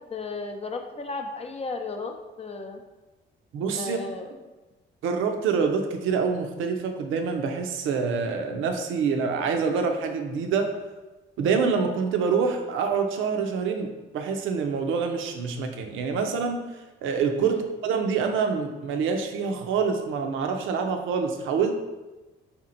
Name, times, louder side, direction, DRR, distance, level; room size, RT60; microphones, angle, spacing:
voice 1, 0.1-2.8 3.8-4.3 17.4-17.7, left 3 dB, 30° left, 4 dB, 0.5 m, -34 dB
voice 2, 3.5-4.0 5.0-10.7 11.4-21.7, right 5 dB, 80° right, 5 dB, 0.5 m, -26 dB
4.3 x 3.6 x 2.5 m, 1.1 s
cardioid pair, 90°, 20 cm